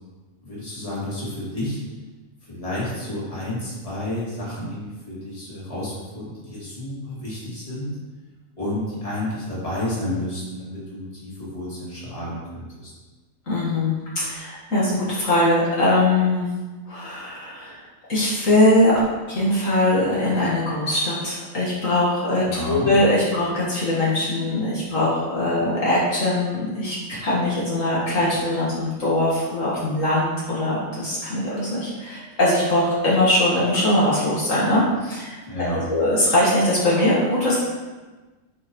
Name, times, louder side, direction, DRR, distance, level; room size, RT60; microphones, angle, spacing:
voice 1, 0.4-1.8 2.5-7.9 8.6-12.9 22.5-22.9 35.5-35.8, left 1 dB, 25° left, -8 dB, 2.5 m, -30 dB
voice 2, 13.5-16.5 16.9-17.8 18.1-19.0 19.3-35.4 35.9-37.6, left 1 dB, 65° left, -8 dB, 2.0 m, -21 dB
9.2 x 5.7 x 3.1 m, 1.2 s
omnidirectional pair, 1.5 m